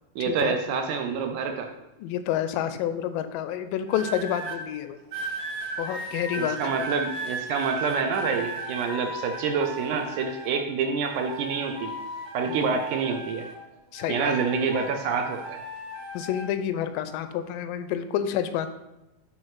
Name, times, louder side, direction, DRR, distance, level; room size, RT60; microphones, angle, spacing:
voice 1, 0.2-1.7 6.4-11.9 12.3-13.5 14.1-15.6, right 5 dB, 75° right, 5 dB, 1.9 m, -27 dB
voice 2, 2.0-5.0 5.8-6.8 12.5-12.7 13.9-14.3 16.1-18.7, left 10 dB, 85° left, 10 dB, 2.2 m, -29 dB
sound 1, 3.9-4.6 5.1-10.6 11.0-13.6 13.9-16.5 17.2-17.5, right 2 dB, 45° right, 1.3 m, -36 dB
9.0 x 3.5 x 4.7 m, 0.97 s
omnidirectional pair, 3.9 m